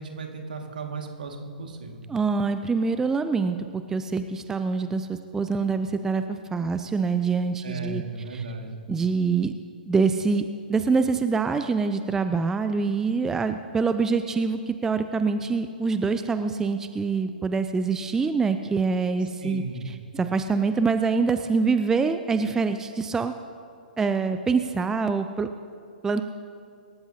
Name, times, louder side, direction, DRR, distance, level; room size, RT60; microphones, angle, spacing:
voice 1, 0.0-2.0 7.6-8.8 19.4-19.8, right 3 dB, 65° right, 3 dB, 2.0 m, -35 dB
voice 2, 2.1-8.0 8.3-8.4 8.9-9.5 9.9-19.6 20.1-23.3 24.0-25.5 26.0-26.2, right 4 dB, 10° right, 9 dB, 0.5 m, -25 dB
25.5 x 13.5 x 2.8 m, 2.4 s
figure-of-eight pair, 115°, 5 cm